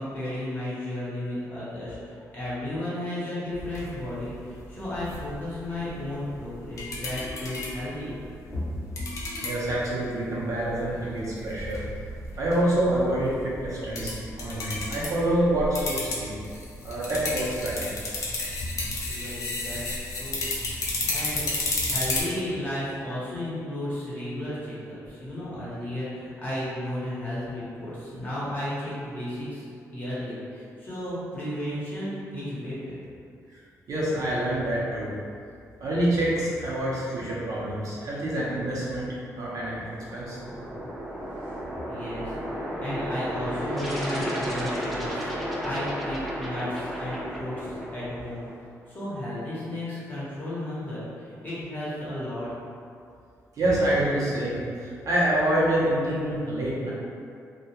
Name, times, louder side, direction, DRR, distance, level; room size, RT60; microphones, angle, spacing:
voice 1, 0.0-8.2 8.5-8.6 19.1-20.5 21.1-21.4 21.9-33.0 41.9-42.3 42.8-48.5 48.9-52.5, left 1 dB, 30° left, -10 dB, 1.0 m, -34 dB
sound 1, 3.5-22.2, left 2 dB, 55° left, 0.5 m, -34 dB
voice 2, 9.4-11.8 12.4-16.4 16.8-17.9 33.5-33.6 33.9-35.1 35.8-39.1 39.4-40.4 53.5-56.9, right 1 dB, 65° right, -7 dB, 0.6 m, -27 dB
sound 2, 39.7-48.7, equal, 15° right, 0.8 m, -34 dB
sound 3, 43.8-48.5, equal, ahead, 0.4 m, -39 dB
2.3 x 2.1 x 2.8 m, 2.4 s
cardioid pair, 110°, 6 cm